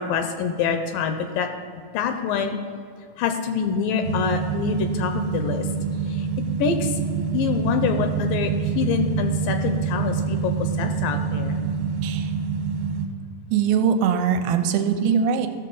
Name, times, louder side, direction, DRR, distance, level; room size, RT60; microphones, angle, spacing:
voice 1, 0.0-1.5 1.9-2.6 3.2-5.7 6.1-6.3 6.6-7.0 7.3-11.6, left 6 dB, 80° left, 6 dB, 2.1 m, -25 dB
sound 1, 4.0-13.1, right 6 dB, 70° right, 2.5 m, -26 dB
voice 2, 13.5-15.5, right 7 dB, 90° right, 6 dB, 2.4 m, -21 dB
15.0 x 6.6 x 3.9 m, 2.3 s
omnidirectional pair, 4.3 m